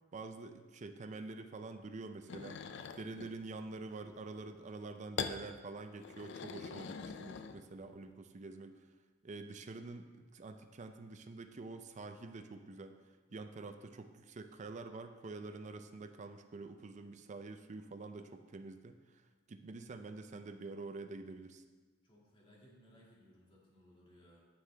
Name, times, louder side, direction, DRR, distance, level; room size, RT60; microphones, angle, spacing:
voice 1, 0.1-2.6 3.0-8.9 9.2-21.6, right 3 dB, 35° right, 7 dB, 0.5 m, -47 dB
sound 1, 2.3-3.3 5.2-5.4 6.0-7.9, left 6 dB, 60° left, 0.4 m, -43 dB
voice 2, 22.0-24.5, equal, 25° left, -4 dB, 2.1 m, -63 dB
9.6 x 7.3 x 3.4 m, 1.3 s
head